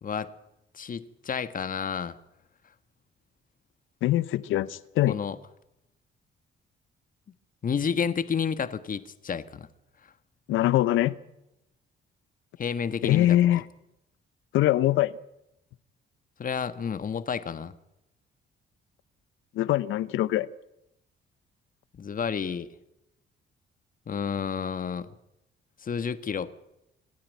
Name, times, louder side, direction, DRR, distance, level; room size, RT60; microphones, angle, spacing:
voice 1, 0.7-2.2 5.1-5.4 7.6-9.7 12.6-13.4 16.4-17.8 21.9-22.7 24.1-25.1 25.8-26.5, left 6 dB, 45° left, 12 dB, 1.5 m, -30 dB
voice 2, 4.0-5.2 10.5-11.2 13.0-13.6 14.5-15.1 19.5-20.5, left 14 dB, 85° left, 18 dB, 0.9 m, -23 dB
26.5 x 10.5 x 9.5 m, 0.87 s
cardioid pair, 90°, 20 cm